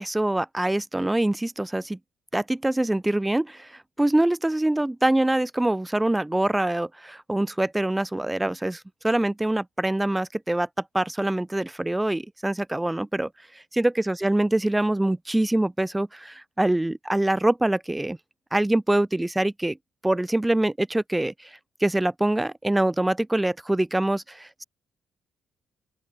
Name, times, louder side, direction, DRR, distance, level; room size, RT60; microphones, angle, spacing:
voice 1, 0.0-2.0 2.3-10.7 10.9-18.2 18.5-19.8 20.0-24.6, right 1 dB, 10° right, 1.2 m, -24 dB
open air
cardioid pair, 90°, 0 cm